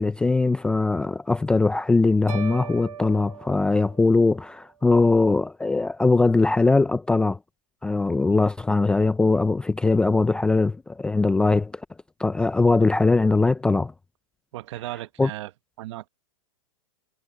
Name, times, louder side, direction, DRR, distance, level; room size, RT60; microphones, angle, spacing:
voice 1, 0.0-7.4 7.8-11.8 12.2-13.9 15.2-15.3, left 3 dB, 5° left, 0.4 m, -21 dB
sound 1, 2.3-4.6, right 9 dB, 90° right, 4.0 m, -39 dB
voice 2, 14.5-15.5 15.8-16.1, right 16 dB, 55° right, 1.4 m, -35 dB
hypercardioid pair, 150°, 18 cm